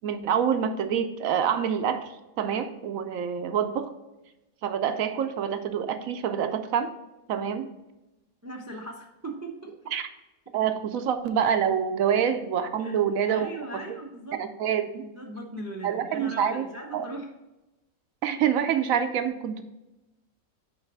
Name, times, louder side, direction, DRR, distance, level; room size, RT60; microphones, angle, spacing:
voice 1, 0.0-3.9 4.6-6.9 7.3-7.7 9.9-10.0 10.5-13.5 14.4-15.1 15.8-16.6 16.9-17.1 18.2-19.6, right 8 dB, 75° right, 9 dB, 1.0 m, -26 dB
voice 2, 8.4-9.9 12.0-12.1 12.8-13.0 13.3-14.4 15.0-17.3, right 1 dB, 25° right, 2 dB, 0.3 m, -39 dB
6.4 x 4.7 x 4.7 m, 1.0 s
omnidirectional pair, 1.5 m